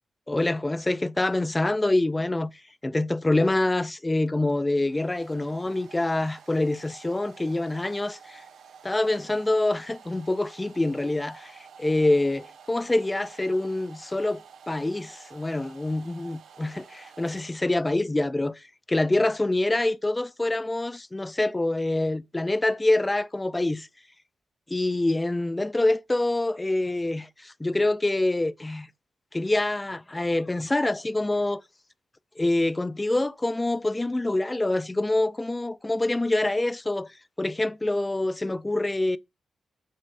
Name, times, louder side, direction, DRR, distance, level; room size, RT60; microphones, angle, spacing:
voice 1, 0.3-2.5 2.8-8.4 8.8-14.4 14.7-23.9 24.7-28.9 29.3-31.6 32.4-39.2, left 2 dB, 15° left, 0.3 m, -26 dB
Domestic sounds home sounds, 4.3-18.0, right 7 dB, 75° right, 1.0 m, -50 dB
7.5 x 2.5 x 5.2 m
wide cardioid pair, 145°, 0 cm